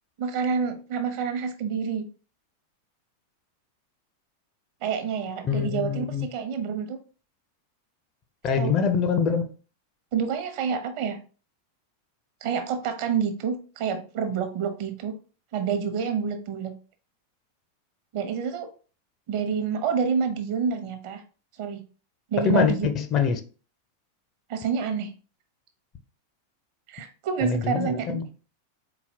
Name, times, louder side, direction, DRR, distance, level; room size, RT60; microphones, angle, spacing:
voice 1, 0.2-2.0 4.8-7.0 8.6-8.7 10.1-11.2 12.4-15.1 15.5-16.7 18.1-18.7 19.3-21.2 21.6-21.8 22.3-22.9 24.5-25.1 26.9-28.2, right 6 dB, 45° right, 0.9 m, -28 dB
voice 2, 5.4-6.3 8.4-9.5 22.4-23.4 27.4-28.2, left 6 dB, 35° left, 0.6 m, -24 dB
4.1 x 4.0 x 2.8 m
figure-of-eight pair, 90°, 0 cm